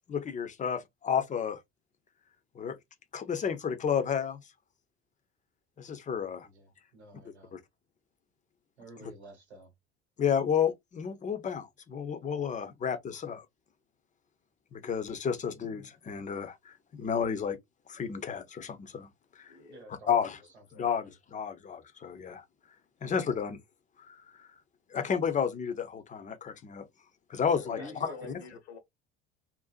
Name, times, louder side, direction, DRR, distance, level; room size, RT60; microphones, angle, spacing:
voice 1, 0.1-1.6 2.6-2.8 3.1-4.4 5.8-6.5 7.5-7.6 9.0-9.1 10.2-13.4 14.7-17.6 17.9-19.1 19.4-19.5 20.1-20.4 20.7-22.4 23.0-23.6 24.1-24.5 24.9-26.8 27.3-27.8, left 7 dB, 25° left, 0.5 m, -31 dB
voice 2, 6.4-7.5 8.8-9.7 19.7-20.2 20.5-21.1 23.0-23.1 27.7-28.4, right 1 dB, 85° right, 1.0 m, -50 dB
voice 3, 19.5-20.0 20.7-20.9 27.5-28.8, left 5 dB, 75° left, 0.8 m, -46 dB
2.5 x 2.1 x 2.4 m
hypercardioid pair, 65°, 32 cm